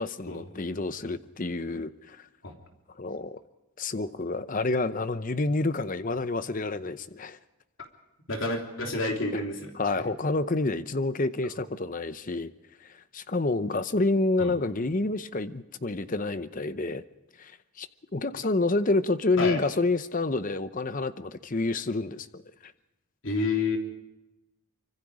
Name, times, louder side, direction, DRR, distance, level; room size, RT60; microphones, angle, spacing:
voice 1, 0.0-2.2 3.0-3.4 3.8-7.4 9.3-9.4 9.7-12.5 12.8-17.0 17.4-17.5 17.8-17.9 18.1-22.7, left 2 dB, 35° left, 12 dB, 0.8 m, -28 dB
voice 2, 8.3-9.7 10.0-10.1 14.4-14.5 19.4-19.6 23.2-23.8, left 3 dB, 60° left, 2 dB, 3.3 m, -29 dB
25.0 x 24.5 x 5.0 m, 0.98 s
head